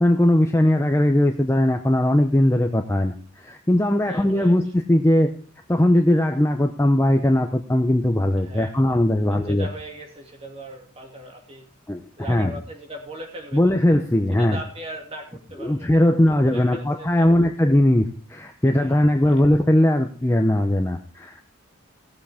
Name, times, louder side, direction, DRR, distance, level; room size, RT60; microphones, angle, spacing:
voice 1, 0.0-5.3 5.7-9.7 11.9-12.0 12.3-12.5 13.5-14.6 15.6-21.4, left 1 dB, 15° left, 5 dB, 0.6 m, -19 dB
voice 2, 4.0-4.6 8.4-8.8 9.2-11.6 12.2-13.7 14.3-17.5 18.7-19.4, right 1 dB, 30° right, 1 dB, 2.3 m, -39 dB
17.5 x 7.5 x 3.5 m, 0.41 s
head